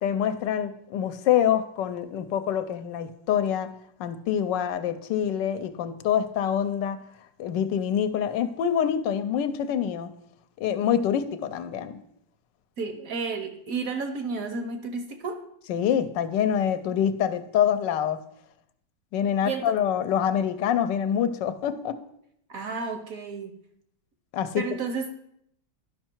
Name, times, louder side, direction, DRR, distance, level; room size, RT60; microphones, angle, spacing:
voice 1, 0.0-3.7 4.0-7.0 7.4-10.1 10.6-12.0 15.7-18.2 19.1-22.0 24.3-24.6, left 9 dB, 80° left, 10 dB, 1.2 m, -26 dB
voice 2, 12.8-15.4 19.4-19.8 22.5-23.6 24.6-25.1, right 4 dB, 60° right, 7 dB, 1.0 m, -32 dB
11.5 x 5.5 x 4.4 m, 0.73 s
omnidirectional pair, 2.0 m